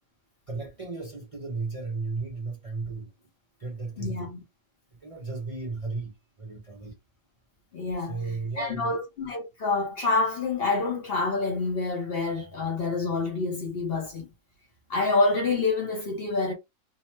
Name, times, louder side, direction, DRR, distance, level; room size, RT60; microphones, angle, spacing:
voice 1, 0.5-3.1 3.6-4.3 5.0-6.1 6.4-7.0 8.0-9.0, right 3 dB, 35° right, 0.5 m, -34 dB
voice 2, 4.0-4.4 7.7-8.2 8.6-14.3 14.9-16.5, left 3 dB, 50° left, 0.8 m, -27 dB
2.8 x 2.0 x 3.1 m
omnidirectional pair, 1.5 m